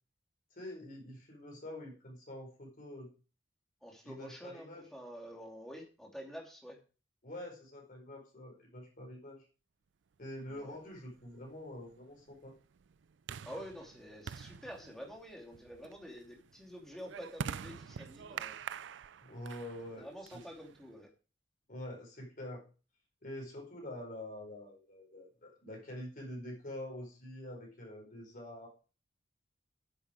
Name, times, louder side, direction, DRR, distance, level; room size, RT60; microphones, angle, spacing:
voice 1, 0.5-3.1 4.0-4.9 7.2-9.5 10.2-12.5 19.2-20.4 21.7-22.6 23.2-28.7, left 1 dB, 50° left, 0 dB, 4.5 m, -46 dB
voice 2, 3.8-6.8 10.5-10.8 13.4-18.5 20.0-21.1, equal, ahead, 0 dB, 2.7 m, -48 dB
sound 1, 10.6-21.0, right 7 dB, 75° right, 0.4 m, -46 dB
9.8 x 8.0 x 5.0 m, 0.35 s
head